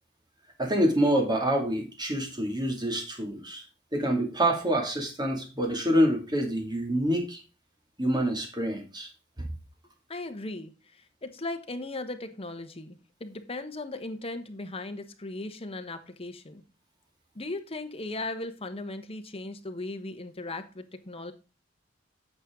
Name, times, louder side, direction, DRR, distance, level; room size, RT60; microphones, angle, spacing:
voice 1, 0.6-3.6 3.9-7.4 8.0-9.1 9.4-9.5, right 1 dB, 20° right, 2.4 m, -26 dB
voice 2, 10.1-16.6 17.3-21.3, left 2 dB, 30° left, 1.2 m, -37 dB
8.9 x 6.3 x 3.7 m
head